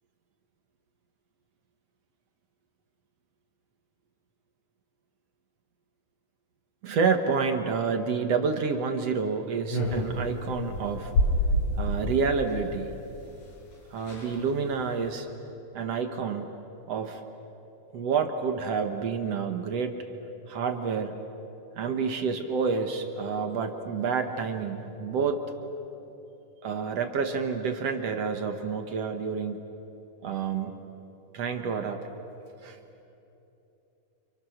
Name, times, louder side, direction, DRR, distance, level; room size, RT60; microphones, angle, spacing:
voice 1, 6.8-11.1 11.8-12.9 13.9-15.3 15.7-16.5 16.9-17.2 17.9-20.0 20.5-21.2 21.8-25.4 26.6-29.7 30.2-30.7 31.3-32.0 32.6-32.8, right 5 dB, 55° right, 6 dB, 2.1 m, -29 dB
sound 1, 9.7-12.2 13.4-13.5 13.7-13.8 14.0-14.3 14.8-15.1, equal, 75° left, 7.8 m, -27 dB
30.0 x 29.0 x 6.6 m, 3.0 s
omnidirectional pair, 3.8 m